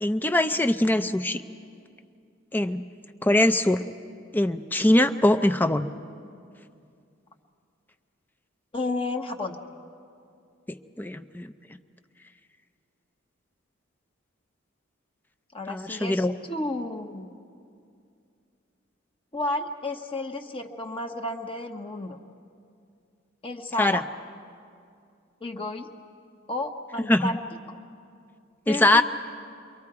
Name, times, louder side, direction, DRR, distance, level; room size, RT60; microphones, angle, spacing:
voice 1, 0.0-1.4 2.5-2.8 3.2-3.8 4.3-5.9 11.0-11.5 15.7-16.4 23.8-24.0 27.1-27.3 28.7-29.0, left 1 dB, 10° left, 8 dB, 0.5 m, -22 dB
voice 2, 8.7-9.6 15.5-17.3 19.3-22.2 23.4-24.0 25.4-25.9 26.5-27.4 27.7-27.8 28.7-29.0, left 2 dB, 25° left, 3 dB, 0.8 m, -32 dB
29.5 x 23.5 x 4.8 m, 2.4 s
head